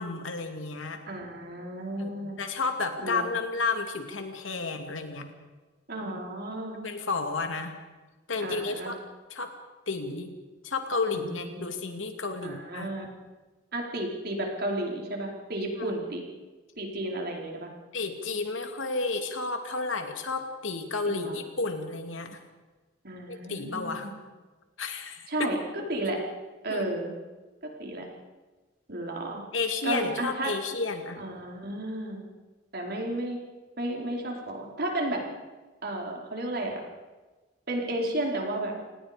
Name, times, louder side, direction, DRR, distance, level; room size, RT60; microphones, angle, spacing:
voice 1, 0.0-1.0 2.0-5.3 6.0-6.1 6.8-7.7 8.3-8.9 9.3-9.5 9.9-10.3 10.6-12.9 15.8-15.9 17.9-22.4 23.3-24.1 24.8-25.5 26.7-27.0 29.5-31.2, left 3 dB, 85° left, 5 dB, 2.6 m, -32 dB
voice 2, 1.1-2.4 3.0-3.2 5.9-6.8 8.4-8.9 11.1-11.7 12.4-13.1 13.7-16.2 16.8-17.7 21.1-21.4 23.0-24.2 25.3-26.2 26.6-27.1 27.6-28.0 28.9-29.4 29.8-30.5 31.2-32.2 32.7-33.4 33.8-35.2 35.8-36.8 37.7-38.7, right 1 dB, 55° right, 0 dB, 4.5 m, -33 dB
28.0 x 19.5 x 5.2 m, 1.2 s
head